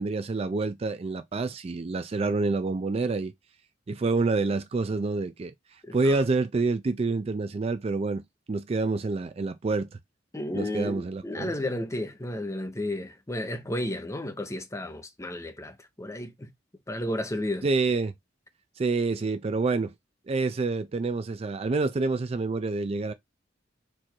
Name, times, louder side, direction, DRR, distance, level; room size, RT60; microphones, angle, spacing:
voice 1, 0.0-3.3 3.9-5.5 5.9-9.9 10.5-11.5 17.6-18.1 18.8-19.9 20.3-23.1, right 3 dB, 35° right, 0.4 m, -27 dB
voice 2, 5.8-6.2 10.3-16.5 16.9-17.7, left 1 dB, 15° left, 0.7 m, -33 dB
4.5 x 2.6 x 4.4 m
head